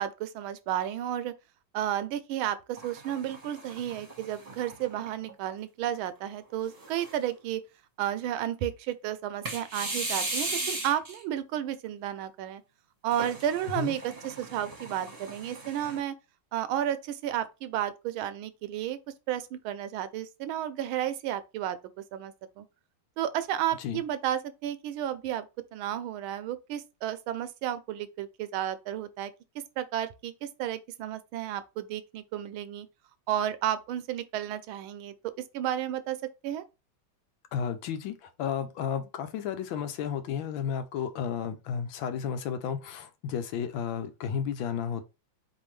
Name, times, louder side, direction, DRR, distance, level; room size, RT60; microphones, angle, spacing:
voice 1, 0.0-1.3 1.7-7.6 8.0-12.6 13.0-16.2 16.5-19.0 19.3-21.8 22.1-22.6 23.2-25.5 25.7-32.9 33.3-35.1 35.5-36.2 36.4-36.6, right 11 dB, 80° right, 1.4 m, -32 dB
sound 1, 2.8-5.3 5.9-6.0 6.7-7.4 9.5-11.2 13.1-16.0, right 2 dB, 25° right, 1.0 m, -37 dB
voice 2, 37.5-45.0, left 7 dB, 75° left, 1.4 m, -33 dB
4.3 x 3.4 x 3.1 m
omnidirectional pair, 2.3 m